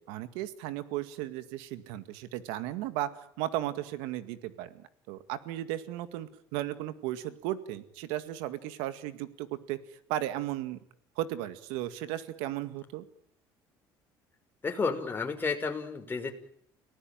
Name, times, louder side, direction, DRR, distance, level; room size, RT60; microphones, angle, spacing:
voice 1, 0.0-10.8 11.2-13.1, right 13 dB, 90° right, 12 dB, 2.0 m, -35 dB
voice 2, 14.6-16.3, left 4 dB, 25° left, 4 dB, 5.8 m, -31 dB
30.0 x 19.0 x 9.1 m, 0.66 s
cardioid pair, 105°, 9 cm